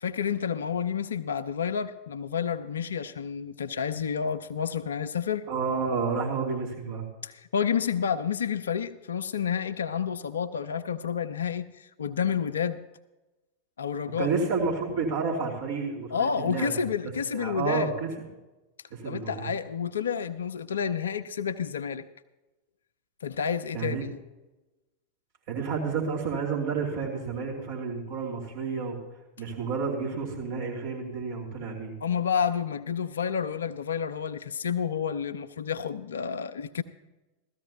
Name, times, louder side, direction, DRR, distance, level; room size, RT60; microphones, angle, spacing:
voice 1, 0.0-5.4 7.2-12.8 13.8-14.3 16.1-17.9 19.0-22.0 23.2-24.1 32.0-36.8, left 7 dB, 65° left, 10 dB, 0.5 m, -30 dB
voice 2, 5.5-7.0 14.1-16.7 17.3-18.1 18.9-19.5 23.7-24.0 25.5-29.0 29.4-31.9, right 5 dB, 50° right, -3 dB, 2.6 m, -30 dB
16.5 x 13.5 x 2.8 m, 1.1 s
figure-of-eight pair, 90°, 0 cm